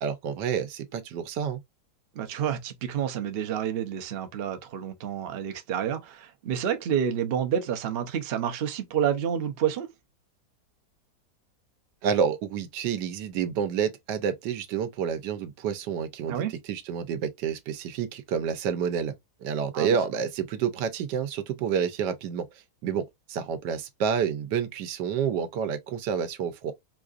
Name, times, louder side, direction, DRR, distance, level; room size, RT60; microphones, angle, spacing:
voice 1, 0.0-1.6 12.0-16.4 16.7-19.1 19.4-22.5 22.8-26.7, right 7 dB, 85° right, 1.3 m, -29 dB
voice 2, 2.1-9.9 16.3-16.5 19.7-20.0, right 9 dB, 60° right, 0.6 m, -29 dB
4.5 x 2.4 x 2.4 m
omnidirectional pair, 1.8 m